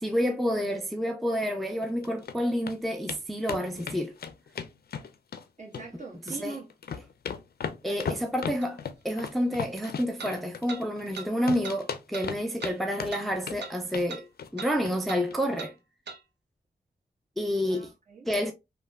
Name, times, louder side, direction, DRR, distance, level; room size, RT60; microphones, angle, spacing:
voice 1, 0.0-4.1 6.3-6.6 7.8-8.8 9.0-14.3 14.5-15.7 17.4-17.9 18.3-18.5, equal, ahead, 0.4 m, -29 dB
sound 1, 1.8-2.3 2.7-2.8 3.1-3.2 3.5-5.4 5.7-6.4 6.7-11.2 11.5-12.7 13.0-13.6 13.9-14.1 14.4-14.6 14.9-15.0 15.3-15.4, left 6 dB, 60° left, 0.4 m, -36 dB
voice 2, 5.6-6.7 7.8-8.1 17.7-18.3, right 4 dB, 45° right, 1.3 m, -42 dB
sound 2, 8.6-8.7 10.2-10.3 10.7-10.8 11.1-11.3 11.6-11.8 12.1-12.3 12.6-12.7 13.1-13.3 13.6-13.8 14.1-14.2 14.6-14.7 15.1-15.2 15.6-15.7 16.1-16.2, right 5 dB, 70° right, 0.6 m, -39 dB
3.1 x 2.2 x 2.2 m
cardioid pair, 45°, 18 cm